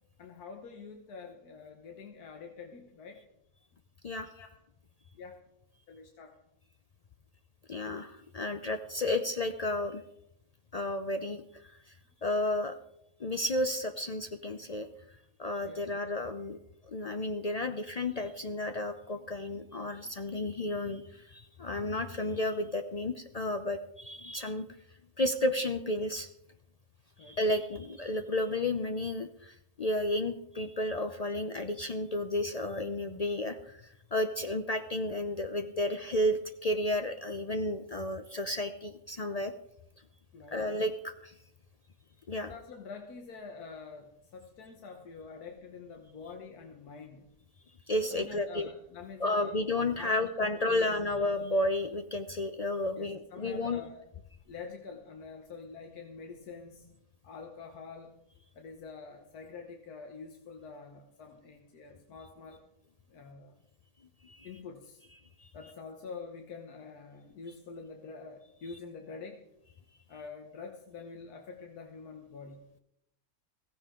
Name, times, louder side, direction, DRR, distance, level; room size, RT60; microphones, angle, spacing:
voice 1, 0.2-3.2 4.3-4.5 5.2-5.3 5.9-6.3 15.6-15.9 27.2-27.4 40.3-40.7 42.4-47.3 48.1-51.2 52.9-54.1 54.5-56.9 57.2-58.1 58.5-62.6 63.1-63.5 64.4-65.0 65.5-69.4 70.1-72.6, left 5 dB, 85° left, 3 dB, 1.7 m, -46 dB
voice 2, 7.7-10.0 10.7-11.4 12.2-12.7 13.2-14.9 15.4-16.6 16.9-24.7 25.2-26.3 27.2-33.8 34.1-39.5 40.5-41.3 42.3-42.5 47.9-48.7 49.2-53.9 64.2-64.5 65.4-65.5, left 1 dB, 65° left, 7 dB, 0.3 m, -32 dB
15.5 x 15.5 x 3.7 m, 0.81 s
omnidirectional pair, 1.6 m